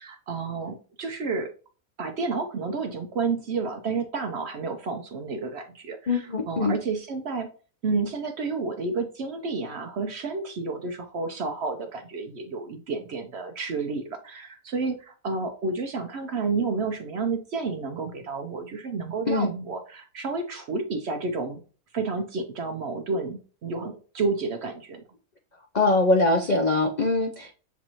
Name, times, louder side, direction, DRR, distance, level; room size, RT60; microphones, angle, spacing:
voice 1, 0.0-1.5 2.0-7.5 7.8-21.6 21.9-25.0, right 4 dB, 60° right, 6 dB, 0.7 m, -30 dB
voice 2, 6.1-6.7 19.3-19.5 25.7-27.5, left 2 dB, 60° left, 2 dB, 0.4 m, -22 dB
7.1 x 2.6 x 2.9 m, 0.38 s
omnidirectional pair, 1.5 m